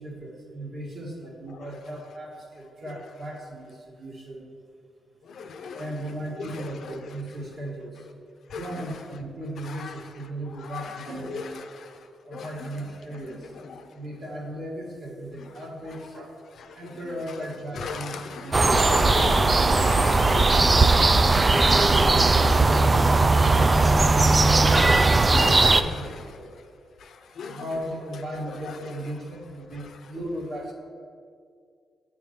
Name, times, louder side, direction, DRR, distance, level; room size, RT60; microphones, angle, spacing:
voice 1, 0.0-4.5 5.7-8.1 8.5-11.7 12.2-13.5 13.9-16.4 16.7-20.0 21.4-26.5 27.4-30.7, right 1 dB, 50° right, -2 dB, 1.7 m, -37 dB
voice 2, 5.3-5.8 6.4-6.6 8.5-8.6 9.8-9.9 10.7-11.5 12.3-12.5 17.8-21.3 23.6-24.3 25.3-26.3 27.0-27.1 27.4-27.6, left 5 dB, 70° left, 6 dB, 0.5 m, -36 dB
sound 1, 18.5-25.8, right 3 dB, 25° right, 0.3 m, -18 dB
7.7 x 3.6 x 5.7 m, 2.2 s
cardioid pair, 85°, 0 cm